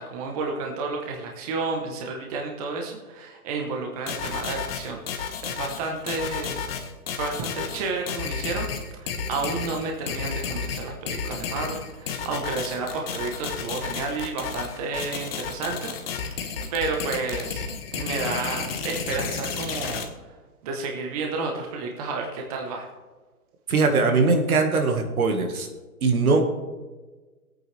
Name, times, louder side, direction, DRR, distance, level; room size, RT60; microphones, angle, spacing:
voice 1, 0.0-6.6 7.1-8.7 9.0-16.4 16.7-17.6 17.9-20.0 20.6-22.9, right 3 dB, 25° right, 1 dB, 1.2 m, -31 dB
sound 1, 4.1-20.0, left 6 dB, 40° left, 1.4 m, -32 dB
voice 2, 23.7-25.7 26.0-26.4, right 3 dB, 70° right, 4 dB, 2.0 m, -21 dB
18.5 x 8.9 x 3.4 m, 1.3 s
hypercardioid pair, 160°, 45 cm